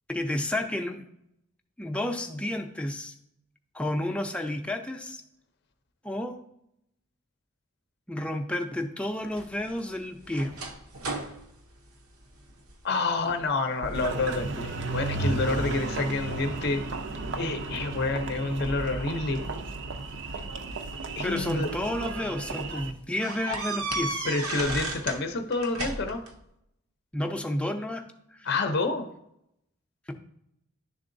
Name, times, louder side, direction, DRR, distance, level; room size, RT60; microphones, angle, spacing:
voice 1, 0.1-1.0 1.8-3.1 3.7-5.2 6.0-6.4 8.1-10.5 21.2-24.3 27.1-28.0 28.4-28.5 30.1-30.2, left 1 dB, 5° left, 4 dB, 0.5 m, -31 dB
sound 1, 9.3-12.8 13.2-13.5 13.8-14.5 14.9-15.7 16.3-17.7 18.9-19.0 20.2-21.6 22.1-22.3 22.6-22.7 23.2-25.2 25.5-26.3, right 2 dB, 85° right, 0.8 m, -35 dB
voice 2, 12.8-16.8 17.4-19.4 21.2-21.7 24.2-26.2 28.4-29.1, left 3 dB, 50° left, 6 dB, 0.6 m, -28 dB
Engine, 13.9-22.9, right 3 dB, 55° right, 0.5 m, -34 dB
10.5 x 3.7 x 2.6 m, 0.79 s
head